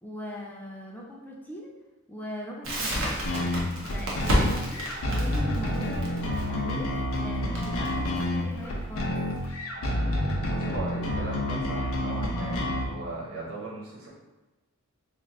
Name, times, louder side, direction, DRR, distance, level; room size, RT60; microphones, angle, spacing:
voice 1, 0.0-1.7 2.1-3.0 3.7-9.2, left 1 dB, 10° left, -2 dB, 0.4 m, -40 dB
Crackle, 2.6-9.5, equal, 70° right, 0.9 m, -30 dB
sound 1, 3.3-12.9, left 1 dB, 80° left, 0.6 m, -29 dB
voice 2, 10.4-14.1, right 2 dB, 85° right, -5 dB, 1.3 m, -37 dB
3.2 x 2.5 x 3.8 m, 1.1 s
head